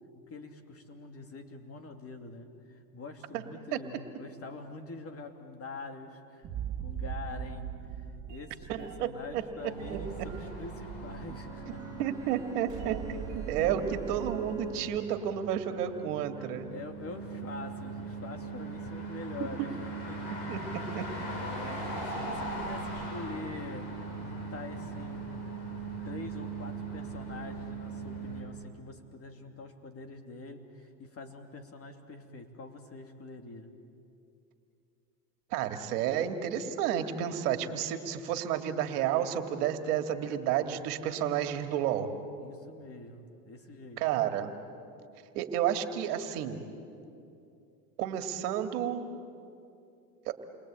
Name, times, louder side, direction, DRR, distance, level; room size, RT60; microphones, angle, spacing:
voice 1, 0.3-11.8 13.6-13.9 16.4-19.8 20.1-20.3 21.0-23.9 24.2-25.3 26.0-33.7 42.4-44.0, left 3 dB, 30° left, 5 dB, 2.9 m, -45 dB
sound 1, 6.4-15.0, right 8 dB, 35° right, 2.5 m, -41 dB
voice 2, 8.7-9.4 9.9-10.3 12.0-13.8 14.1-16.7 20.5-21.0 35.5-42.2 44.0-44.5 45.3-46.6 48.0-49.1 50.3-50.4, right 10 dB, 65° right, 7 dB, 2.2 m, -31 dB
sound 2, 9.6-28.4, right 3 dB, 50° left, 7.8 m, -40 dB
Bowed string instrument, 11.3-15.2, right 3 dB, 5° right, 2.7 m, -49 dB
29.0 x 23.0 x 8.8 m, 2.6 s
hypercardioid pair, 105°, 49 cm